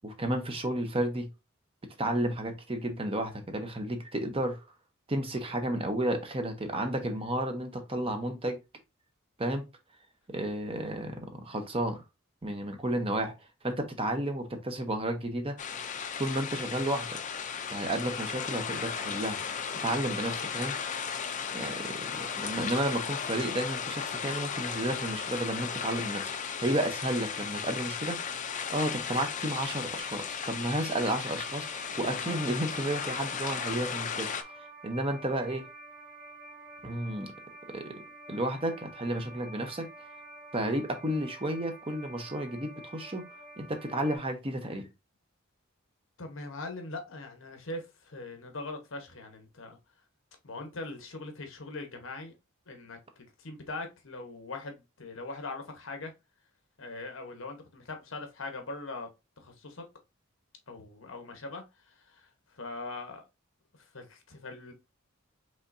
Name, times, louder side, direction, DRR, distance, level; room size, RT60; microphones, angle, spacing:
voice 1, 0.0-1.3 2.0-4.6 5.1-8.6 9.4-9.7 10.3-12.0 12.4-13.3 13.6-15.6 16.2-17.1 17.7-19.4 19.8-20.8 21.5-28.2 28.7-35.7 36.8-37.3 37.7-37.9 38.3-39.9 40.5-43.2 43.6-44.9, right 1 dB, 25° right, 0.9 m, -32 dB
sound 1, 15.6-34.4, left 7 dB, 35° left, 0.5 m, -35 dB
sound 2, 30.0-44.2, right 2 dB, 45° right, 1.6 m, -49 dB
voice 2, 46.2-49.8 50.4-52.3 52.7-53.0 53.4-56.1 56.8-59.1 59.4-59.9 60.7-63.2 63.8-64.7, left 2 dB, 65° left, 1.1 m, -41 dB
5.4 x 3.3 x 2.6 m
head